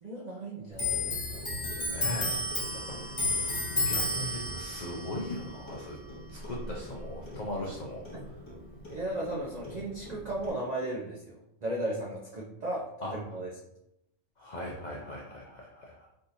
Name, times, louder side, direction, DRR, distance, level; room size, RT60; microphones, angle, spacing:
voice 1, 0.0-1.7 8.1-8.2 8.9-11.4 11.6-12.8 13.1-13.5, right 1 dB, 85° right, -3 dB, 0.3 m, -35 dB
Clock, 0.7-7.8 8.1-9.4 9.6-10.5, left 2 dB, 25° left, 0.7 m, -33 dB
voice 2, 1.9-2.3 2.7-3.1 3.4-6.0 6.3-8.0 13.0-13.1 14.4-16.1, left 1 dB, 75° left, -3 dB, 0.4 m, -39 dB
3.5 x 2.7 x 2.6 m, 0.87 s
omnidirectional pair, 1.4 m